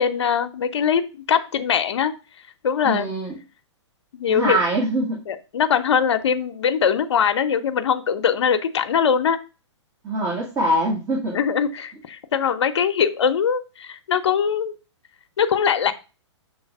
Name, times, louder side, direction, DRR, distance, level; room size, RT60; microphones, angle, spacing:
voice 1, 0.0-2.1 2.6-3.1 4.1-4.6 5.3-9.4 11.3-14.7 15.4-15.9, left 7 dB, 65° left, 9 dB, 0.8 m, -21 dB
voice 2, 2.8-3.3 4.3-5.2 10.0-11.4, right 1 dB, 20° right, -2 dB, 1.5 m, -23 dB
6.5 x 3.2 x 5.4 m, 0.31 s
hypercardioid pair, 140°, 15 cm